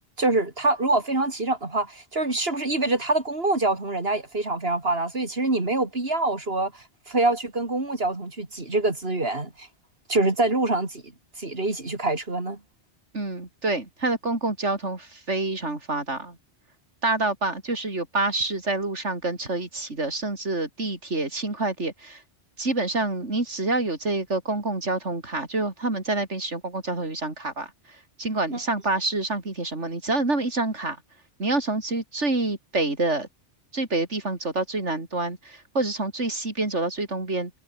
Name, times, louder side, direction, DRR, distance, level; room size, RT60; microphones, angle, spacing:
voice 1, 0.2-9.7 10.1-11.0 11.4-12.6 28.5-28.6, right 2 dB, 55° right, 4.0 m, -25 dB
voice 2, 13.1-16.4 17.0-22.2 22.6-27.7 28.2-31.0 31.4-33.3 33.7-37.5, right 2 dB, 75° right, 4.6 m, -27 dB
omnidirectional pair, 1.2 m